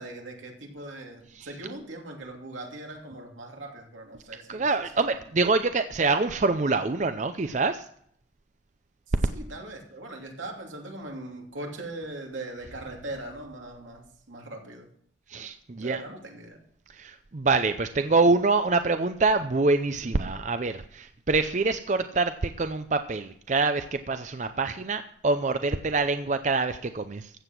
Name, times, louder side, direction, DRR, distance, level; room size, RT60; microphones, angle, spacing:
voice 1, 0.0-4.7 5.0-5.2 9.1-14.9 15.8-16.6, right 2 dB, 85° right, 1 dB, 2.8 m, -40 dB
voice 2, 4.5-7.8 15.3-16.0 17.0-27.3, right 3 dB, 40° right, 9 dB, 0.5 m, -25 dB
15.0 x 7.8 x 6.1 m, 0.65 s
head